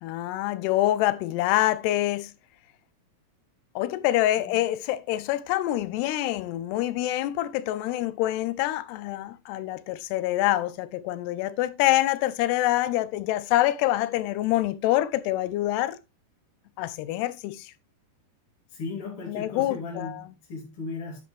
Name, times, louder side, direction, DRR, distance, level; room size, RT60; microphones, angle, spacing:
voice 1, 0.0-2.3 3.8-16.0 16.8-17.7 19.3-20.3, left 15 dB, 85° left, 2.7 m, -26 dB
voice 2, 18.7-21.2, left 4 dB, 35° left, 3.0 m, -36 dB
10.5 x 7.3 x 3.2 m
omnidirectional pair, 4.7 m